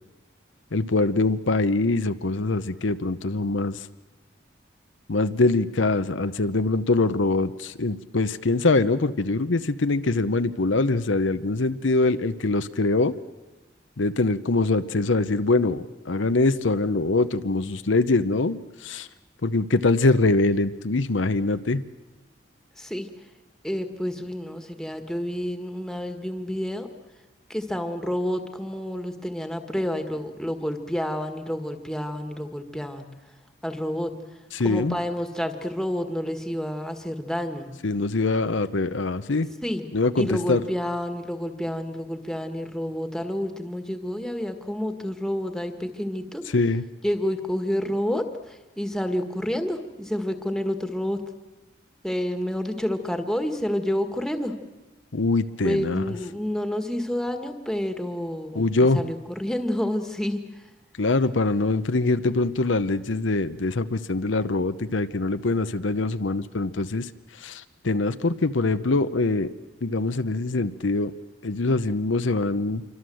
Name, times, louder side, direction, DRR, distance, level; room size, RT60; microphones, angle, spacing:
voice 1, 0.7-3.9 5.1-13.1 14.0-19.1 19.4-21.8 34.5-35.0 37.8-39.5 39.9-40.6 46.5-46.8 55.1-56.0 58.5-59.0 61.0-67.1 67.4-69.5 69.8-71.1 71.4-72.8, left 3 dB, 80° left, 11 dB, 0.9 m, -23 dB
voice 2, 22.8-23.1 23.6-26.9 27.5-33.1 33.6-34.1 34.6-37.7 39.6-39.8 40.2-46.4 47.0-51.2 52.0-54.5 55.6-58.6 58.9-60.7, equal, 5° left, 6 dB, 1.7 m, -29 dB
27.0 x 24.5 x 7.8 m, 1.1 s
head